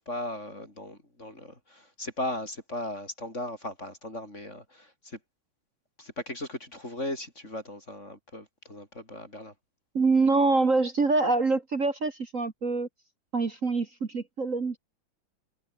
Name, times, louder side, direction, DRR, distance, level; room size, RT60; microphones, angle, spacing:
voice 1, 0.0-5.2 6.0-9.5, left 1 dB, 20° left, 6.3 m, -37 dB
voice 2, 9.9-12.9 13.3-14.8, right 3 dB, 35° right, 1.3 m, -25 dB
omnidirectional pair, 3.7 m